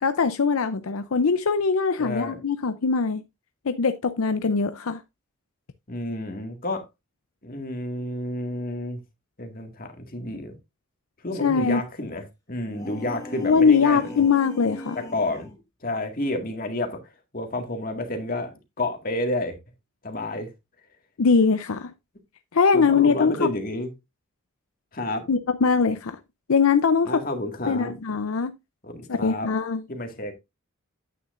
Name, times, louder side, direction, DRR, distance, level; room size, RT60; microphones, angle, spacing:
voice 1, 0.0-3.2 3.7-5.0 11.4-11.8 13.4-15.0 21.2-21.9 22.5-23.5 25.3-26.2 26.5-27.2 27.7-28.5 29.1-29.8, left 5 dB, 75° left, 0.6 m, -21 dB
voice 2, 2.0-2.4 5.9-6.9 7.4-9.0 9.4-10.5 11.2-14.2 15.0-15.5 15.8-17.0 17.3-19.6 20.0-20.5 22.7-23.9 24.9-25.2 27.1-28.0 28.8-29.5 29.9-30.3, left 1 dB, 40° left, 1.9 m, -30 dB
sound 1, 12.6-15.6, left 1 dB, 15° left, 1.9 m, -38 dB
9.4 x 9.4 x 2.5 m
head